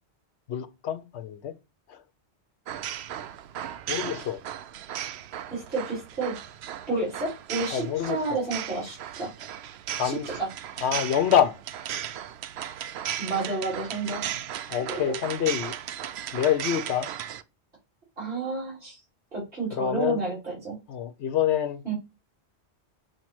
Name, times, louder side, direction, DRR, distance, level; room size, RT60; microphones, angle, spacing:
voice 1, 0.5-1.5 1.9-2.0 3.9-4.4 7.7-8.4 9.9-10.3 10.8-11.5 14.7-15.7 16.3-17.1 19.7-20.2 20.9-21.8, left 9 dB, 80° left, 1.0 m, -26 dB
sound 1, 2.7-17.4, right 10 dB, 75° right, 0.8 m, -36 dB
voice 2, 5.5-6.3 6.9-9.3 10.0-10.5 13.2-14.2 14.9-15.0 18.2-19.0 19.3-20.8 21.8-21.9, right 3 dB, 55° right, 4.1 m, -30 dB
6.9 x 3.0 x 6.0 m
omnidirectional pair, 1.1 m